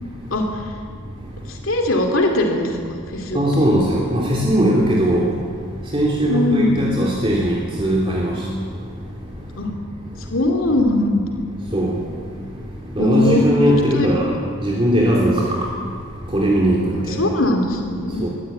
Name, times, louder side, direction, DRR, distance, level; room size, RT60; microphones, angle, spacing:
voice 1, 0.3-0.6 1.5-3.6 6.3-6.8 9.6-9.7 10.3-11.4 13.0-14.2 17.0-18.2, left 1 dB, 85° left, 2 dB, 2.6 m, -20 dB
voice 2, 3.3-5.3 5.9-8.3 11.7-11.9 13.0-14.3 14.6-15.5 16.3-16.8 18.2-18.3, equal, 25° right, -3 dB, 3.0 m, -18 dB
23.5 x 16.0 x 8.7 m, 2.2 s
head